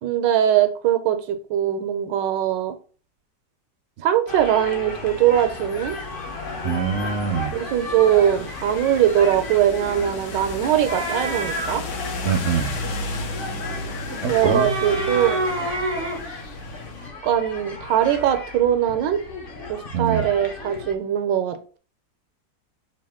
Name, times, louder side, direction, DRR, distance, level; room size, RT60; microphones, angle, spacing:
voice 1, 0.0-2.7 4.0-6.0 7.5-11.8 14.3-15.4 17.2-19.2 19.7-21.8, right 10 dB, 80° right, 9 dB, 1.3 m, -21 dB
sound 1, 4.3-21.0, left 3 dB, 45° left, 0.7 m, -35 dB
sound 2, 4.9-17.1, left 2 dB, 75° left, 1.4 m, -34 dB
voice 2, 6.6-7.5 12.2-12.7 14.2-14.8 19.9-20.3, right 6 dB, 60° right, 7 dB, 0.7 m, -24 dB
sound 3, 10.9-11.8 14.1-16.2, right 2 dB, 45° right, 0.3 m, -27 dB
5.7 x 2.5 x 3.5 m, 0.39 s
omnidirectional pair, 1.9 m